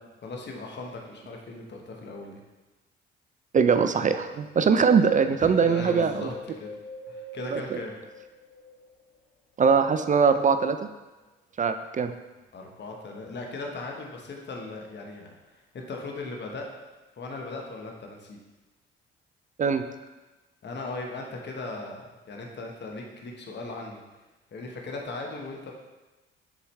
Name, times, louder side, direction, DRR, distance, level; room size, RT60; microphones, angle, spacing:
voice 1, 0.2-2.4 5.4-6.7 7.1-7.9 12.5-16.7 17.2-18.4 20.6-24.0 24.5-25.7, left 2 dB, 40° left, 1 dB, 1.2 m, -38 dB
voice 2, 3.5-6.3 7.5-7.8 9.6-10.9 11.6-12.1 19.6-19.8, right 5 dB, 25° right, 9 dB, 0.4 m, -22 dB
Wind, 5.6-9.2 9.7-10.9 11.5-11.6, equal, 65° left, 1.3 m, -44 dB
6.8 x 4.9 x 3.3 m, 1.2 s
figure-of-eight pair, 50°, 29 cm